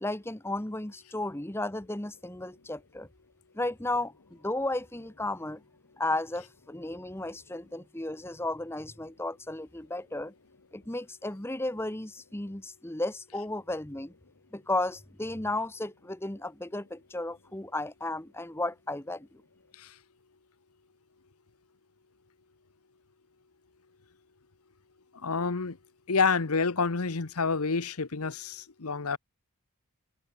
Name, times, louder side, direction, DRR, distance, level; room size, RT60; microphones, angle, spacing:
voice 1, 0.0-3.1 3.5-5.6 6.0-10.3 10.7-14.1 14.5-19.3, left 2 dB, 10° left, 0.9 m, -34 dB
voice 2, 25.2-25.8 26.1-29.2, left 4 dB, 85° left, 1.1 m, -28 dB
head